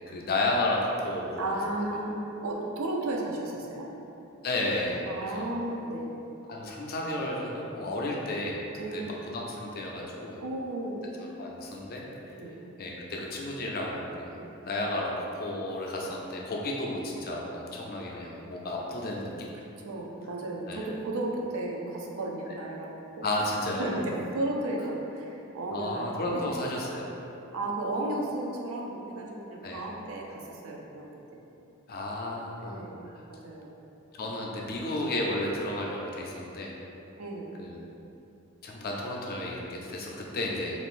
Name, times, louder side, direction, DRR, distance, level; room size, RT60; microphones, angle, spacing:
voice 1, 0.1-1.5 4.4-5.5 6.5-8.6 8.9-9.0 9.3-10.4 11.4-12.3 12.8-14.4 14.7-19.5 20.7-20.8 23.2-23.9 25.7-27.1 29.6-29.8 31.9-32.8 33.1-33.2 34.1-36.7 37.6-37.9 38.6-40.8, left 1 dB, 45° left, -2 dB, 0.4 m, -32 dB
voice 2, 1.4-3.9 5.1-6.2 8.0-8.2 8.8-9.2 10.4-11.4 12.3-12.5 14.3-14.5 19.8-23.3 23.8-26.1 26.3-26.4 27.5-31.1 32.6-33.0 33.3-33.8 34.0-34.1 37.2-37.5, right 1 dB, 70° right, -1 dB, 0.4 m, -34 dB
2.4 x 2.4 x 3.6 m, 2.8 s
head